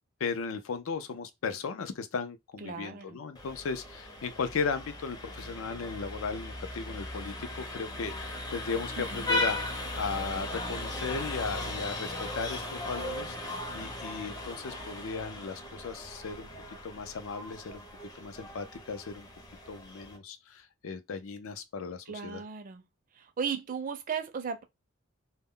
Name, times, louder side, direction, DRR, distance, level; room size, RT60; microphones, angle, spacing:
voice 1, 0.2-17.8 18.1-19.3 19.7-22.4, left 5 dB, 80° left, 0.4 m, -36 dB
voice 2, 2.6-3.2 9.0-9.3 22.1-22.8 23.2-24.6, right 6 dB, 40° right, 0.4 m, -36 dB
Vehicle horn car horn honking, 3.3-20.2, left 1 dB, 20° left, 0.5 m, -37 dB
2.2 x 2.0 x 3.6 m
head